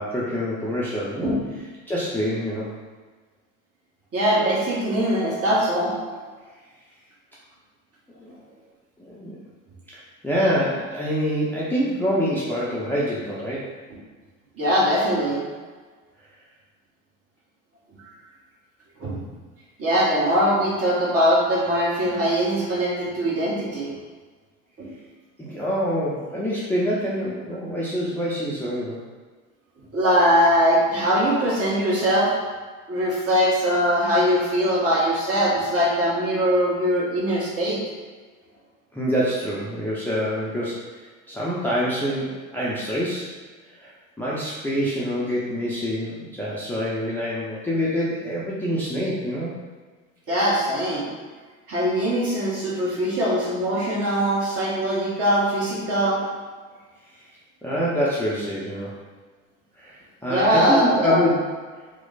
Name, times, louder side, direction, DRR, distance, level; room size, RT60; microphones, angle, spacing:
voice 1, 0.0-1.4 1.9-2.7 8.2-8.3 9.0-9.3 9.9-13.7 25.4-29.0 38.9-40.8 41.3-43.3 43.8-43.9 44.2-49.5 57.6-58.9 59.8-61.4, equal, 5° left, -8 dB, 0.6 m, -26 dB
voice 2, 4.1-6.3 14.6-15.4 19.0-19.2 19.8-23.9 24.8-24.9 29.9-32.3 32.9-37.8 50.3-51.1 51.7-56.3 60.3-61.2, equal, 35° right, -6 dB, 1.4 m, -21 dB
3.0 x 2.1 x 3.9 m, 1.4 s
hypercardioid pair, 80°, 41 cm